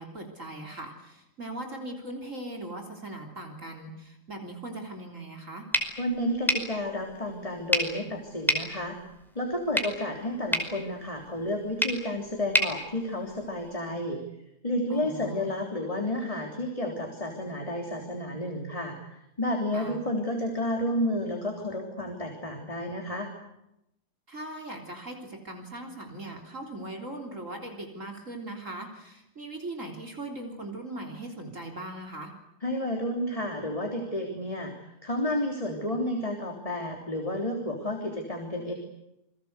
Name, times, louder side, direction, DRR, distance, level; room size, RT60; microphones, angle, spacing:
voice 1, 0.0-5.7 14.9-15.5 19.7-20.0 24.3-32.3, right 1 dB, 50° right, 2 dB, 4.0 m, -39 dB
sound 1, 5.7-13.8, equal, ahead, 5.0 m, -32 dB
voice 2, 6.0-9.0 9.4-14.2 14.6-23.3 32.6-38.7, left 1 dB, 20° left, 2 dB, 3.5 m, -31 dB
29.0 x 22.0 x 8.2 m, 0.85 s
omnidirectional pair, 1.8 m